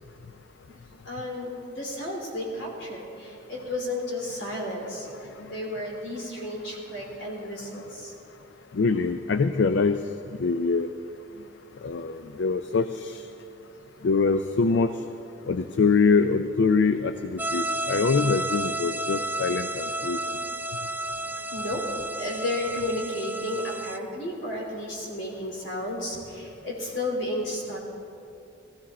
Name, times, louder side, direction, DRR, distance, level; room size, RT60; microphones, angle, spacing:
voice 1, 1.0-8.1 21.3-21.8 22.1-27.8, left 1 dB, 85° left, -1 dB, 3.1 m, -33 dB
voice 2, 8.7-10.0 10.4-10.9 11.8-13.2 14.0-14.9 15.5-20.2, left 4 dB, 70° left, 10 dB, 0.4 m, -24 dB
sound 1, 17.4-24.0, right 2 dB, 10° right, 0.3 m, -32 dB
15.0 x 15.0 x 4.2 m, 2.6 s
head